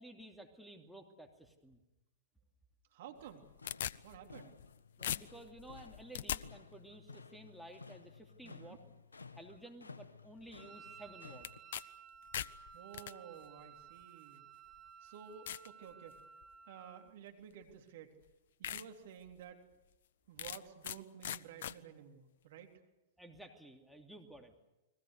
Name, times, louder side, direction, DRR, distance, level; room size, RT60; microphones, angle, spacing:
voice 1, 0.0-1.8 4.4-4.5 5.0-8.8 9.3-11.5 23.2-24.7, right 1 dB, ahead, 4 dB, 2.7 m, -54 dB
voice 2, 2.9-3.5 4.0-4.6 8.4-8.8 12.7-14.5 15.0-16.2 16.7-18.1 18.6-19.6 20.3-22.7, right 8 dB, 60° right, 4 dB, 3.6 m, -52 dB
sound 1, 3.2-4.7 5.0-6.4 11.4-11.8 12.1-13.1 14.0-14.1 14.7-14.8 15.5-15.7 16.2-16.5 17.7-17.8 18.2-18.3 18.6-18.8 19.3-19.4 20.4-21.0 21.2-21.7, left 11 dB, 60° left, 0.8 m, -40 dB
sound 2, 3.3-11.6, left 4 dB, 85° left, 1.2 m, -56 dB
Wind instrument woodwind instrument, 10.6-17.2, right 7 dB, 20° right, 1.3 m, -56 dB
30.0 x 22.0 x 6.6 m, 1.0 s
figure-of-eight pair, 105°, 0 cm